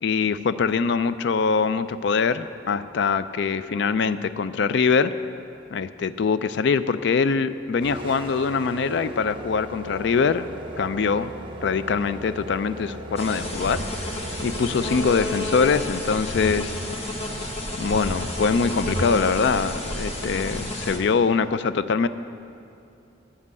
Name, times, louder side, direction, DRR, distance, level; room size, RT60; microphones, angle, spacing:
voice 1, 0.0-5.1 5.7-10.5 10.8-11.3 11.6-13.8 14.4-16.7 17.8-22.1, left 5 dB, 60° left, 13 dB, 0.4 m, -23 dB
sound 1, 7.8-15.1, right 1 dB, 25° right, 1.0 m, -38 dB
sound 2, 13.2-21.0, left 1 dB, 30° left, 1.2 m, -30 dB
9.8 x 7.5 x 8.2 m, 2.7 s
head